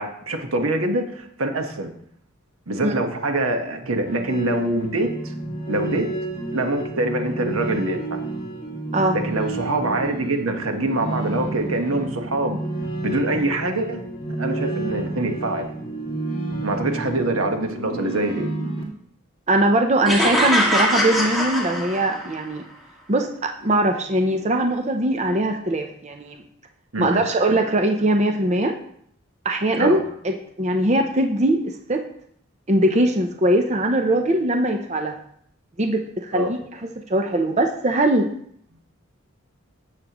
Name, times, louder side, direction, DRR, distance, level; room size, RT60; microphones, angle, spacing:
voice 1, 0.0-1.9 2.7-5.3 5.7-6.1 6.5-8.2 9.1-12.6 13.0-14.0 14.4-15.7 16.6-18.5 26.9-27.3 27.6-27.7 29.8-30.0 36.3-36.5, right 2 dB, 80° right, 4 dB, 1.4 m, -24 dB
sound 1, 4.1-18.8, right 2 dB, 25° left, 2.2 m, -30 dB
voice 2, 19.5-22.7 23.1-26.4 27.0-28.7 29.4-30.0 30.2-32.0 32.7-35.2 35.8-36.6 37.1-38.3, right 1 dB, 30° right, 4 dB, 0.7 m, -21 dB
sound 2, 20.0-22.4, equal, ahead, 2.1 m, -22 dB
15.5 x 6.6 x 3.0 m, 0.66 s
head